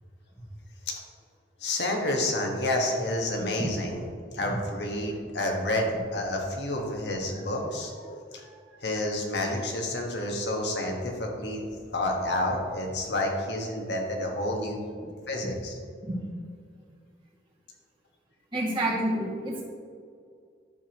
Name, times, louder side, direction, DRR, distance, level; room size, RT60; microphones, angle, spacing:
voice 1, 1.6-4.0 4.3-8.0 8.3-8.5 8.8-15.0 15.3-15.8, left 1 dB, 70° left, 1 dB, 1.4 m, -29 dB
voice 2, 18.5-19.6, right 1 dB, 30° right, -6 dB, 2.1 m, -29 dB
11.0 x 7.1 x 3.0 m, 2.1 s
head